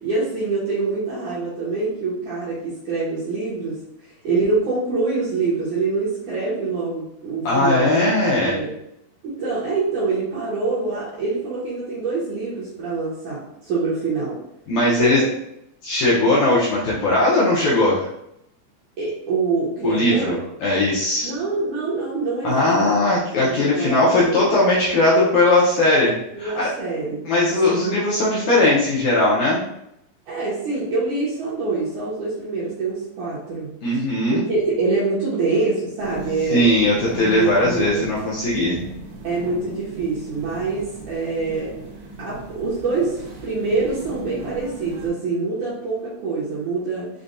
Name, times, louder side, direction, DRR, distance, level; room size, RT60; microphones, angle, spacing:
voice 1, 0.0-3.7 4.2-8.1 8.4-8.7 9.2-14.4 15.0-15.3 19.0-20.4 21.2-23.0 23.4-24.4 26.3-27.2 27.7-28.0 30.3-34.1 34.3-37.0 37.3-38.0 39.2-41.7 42.2-47.1, right 3 dB, 70° right, -8 dB, 2.0 m, -25 dB
voice 2, 7.5-8.6 14.7-15.2 15.8-18.1 19.8-21.3 22.4-26.7 27.2-29.6 33.8-34.4 36.5-38.8, left 2 dB, 80° left, -6 dB, 1.7 m, -19 dB
sound 1, 36.0-45.1, right 4 dB, 85° right, 2.9 m, -38 dB
6.5 x 2.2 x 2.5 m, 0.79 s
omnidirectional pair, 4.5 m